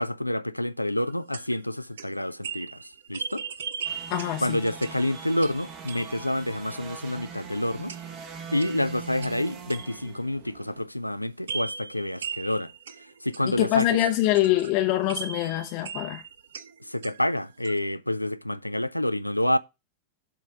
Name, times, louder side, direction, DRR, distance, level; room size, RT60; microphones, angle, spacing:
voice 1, 0.0-3.4 4.4-7.9 8.5-12.7 13.2-13.9 16.8-19.6, left 1 dB, 85° left, 0.4 m, -28 dB
sound 1, 1.0-6.4 7.9-8.3 8.6-10.2 11.5-17.4 17.6-17.8, right 6 dB, 65° right, 0.6 m, -39 dB
sound 2, 3.8-10.8, right 6 dB, 40° right, 1.6 m, -42 dB
voice 2, 4.1-4.6 13.4-16.2, left 14 dB, 45° left, 0.7 m, -24 dB
7.6 x 3.4 x 6.4 m
figure-of-eight pair, 90°, 0 cm